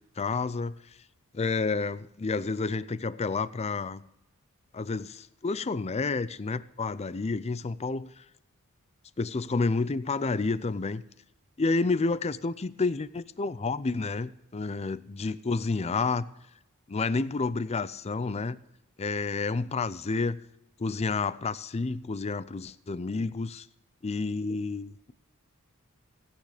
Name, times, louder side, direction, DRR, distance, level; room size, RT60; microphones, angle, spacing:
voice 1, 0.2-0.7 1.3-4.0 4.7-8.1 9.2-11.0 11.6-16.3 16.9-18.6 19.0-20.4 20.8-23.6 24.0-25.1, left 3 dB, 30° left, 0.5 m, -30 dB
16.5 x 8.9 x 5.0 m
head